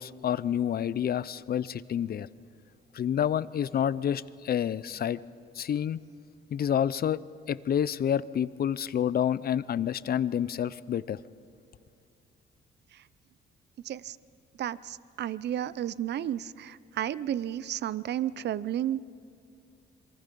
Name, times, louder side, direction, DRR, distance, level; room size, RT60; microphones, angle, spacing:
voice 1, 0.0-2.3 2.9-5.2 5.6-6.0 6.5-7.2 7.5-11.2, left 9 dB, 50° left, 18 dB, 0.6 m, -28 dB
voice 2, 13.8-14.2 14.6-19.0, right 11 dB, 60° right, 18 dB, 0.6 m, -32 dB
27.5 x 23.5 x 5.4 m, 2.4 s
cardioid pair, 90°, 20 cm